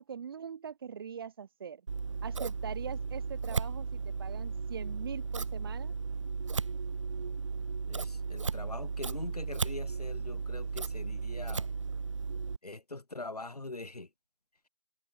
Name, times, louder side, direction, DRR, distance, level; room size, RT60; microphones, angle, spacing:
voice 1, 0.0-1.8 2.2-5.9, right 7 dB, 35° right, 4.7 m, -42 dB
Scissors, 1.9-12.6, right 5 dB, 50° right, 1.5 m, -35 dB
voice 2, 7.9-11.7 12.6-14.1, left 2 dB, 70° left, 5.8 m, -43 dB
figure-of-eight pair, 155°, 20 cm